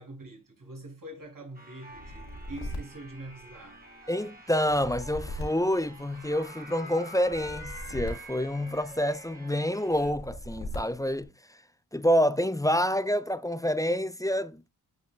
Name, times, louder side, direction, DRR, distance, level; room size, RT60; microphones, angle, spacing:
voice 1, 0.0-4.0, right 1 dB, 50° right, 5.4 m, -44 dB
sound 1, 1.5-10.1, equal, 20° right, 4.0 m, -47 dB
sound 2, 1.9-3.9 4.6-6.5 7.2-9.2 9.9-11.2, left 1 dB, 75° left, 3.5 m, -40 dB
voice 2, 4.1-11.6 11.9-14.6, equal, 10° left, 0.6 m, -28 dB
11.5 x 5.4 x 2.2 m
supercardioid pair, 40°, 41 cm